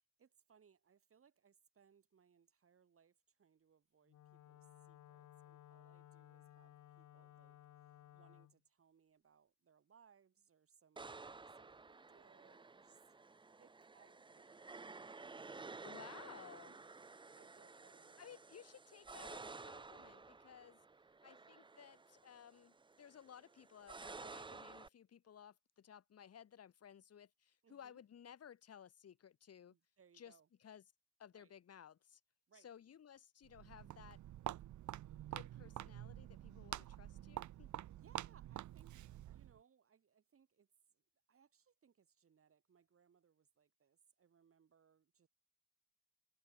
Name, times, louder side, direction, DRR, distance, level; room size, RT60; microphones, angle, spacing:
voice 1, 0.2-7.6 7.8-11.2 11.5-13.1 13.6-16.5 17.0-18.4 27.6-28.0 29.7-30.5 31.3-31.5 32.5-32.7 37.9-40.7 40.9-41.0 41.3-45.3, right 7 dB, 45° right, 6.5 m, -71 dB
Wind instrument woodwind instrument, 4.1-8.6, left 13 dB, 75° left, 4.0 m, -60 dB
sound 1, 11.0-24.9, right 3 dB, 15° right, 0.7 m, -54 dB
voice 2, 15.8-16.8 18.2-20.8 21.2-29.7 30.1-30.8 31.2-32.2 32.5-34.2 35.3-37.7, left 8 dB, 55° left, 2.8 m, -58 dB
Walk footsteps, 33.4-39.6, right 13 dB, 75° right, 1.4 m, -48 dB
cardioid pair, 90°, 30 cm